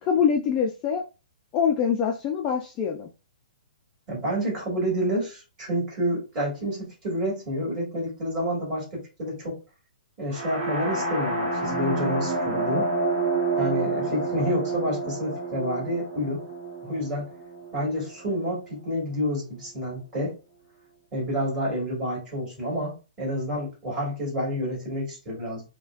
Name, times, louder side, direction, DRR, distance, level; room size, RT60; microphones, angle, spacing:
voice 1, 0.0-1.1 1.5-3.1, left 7 dB, 20° left, 1 dB, 0.4 m, -24 dB
voice 2, 4.1-9.6 10.2-12.9 13.6-16.5 16.8-17.3 17.7-20.3 21.1-25.6, equal, 15° right, -5 dB, 2.0 m, -29 dB
sound 1, 10.3-18.2, right 2 dB, 45° right, 1.2 m, -29 dB
4.9 x 2.2 x 2.4 m, 0.31 s
hypercardioid pair, 160°, 5 cm